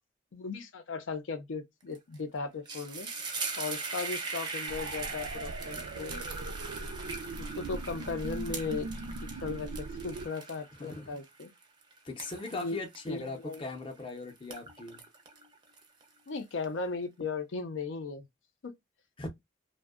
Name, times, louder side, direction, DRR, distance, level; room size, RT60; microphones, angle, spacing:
voice 1, 0.3-3.1 3.6-6.2 7.4-8.9 9.4-11.5 12.5-12.8 13.1-13.6 16.3-18.2 18.6-18.7, left 4 dB, 85° left, 0.5 m, -37 dB
sound 1, 1.9-2.2 2.5-14.0 14.4-16.3, right 4 dB, 25° right, 0.4 m, -41 dB
sound 2, 4.7-10.3, right 3 dB, 90° right, 0.3 m, -40 dB
voice 2, 10.7-11.1 12.0-15.0 19.2-19.3, left 2 dB, 25° left, 0.5 m, -39 dB
2.6 x 2.1 x 2.3 m
head